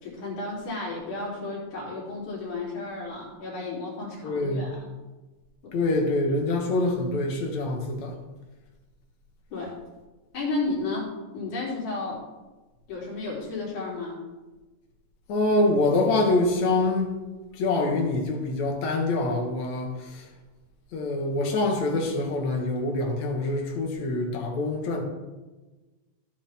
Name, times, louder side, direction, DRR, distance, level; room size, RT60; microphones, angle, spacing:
voice 1, 0.0-4.8 5.6-5.7 9.5-9.7 10.3-11.1 11.3-12.2 12.9-14.2, left 3 dB, 85° left, 4.8 m, -32 dB
voice 2, 4.2-4.7 5.7-8.2 15.3-17.2 17.5-20.3 20.9-25.0, left 2 dB, 70° left, 2.9 m, -25 dB
14.5 x 8.8 x 3.5 m
omnidirectional pair, 3.4 m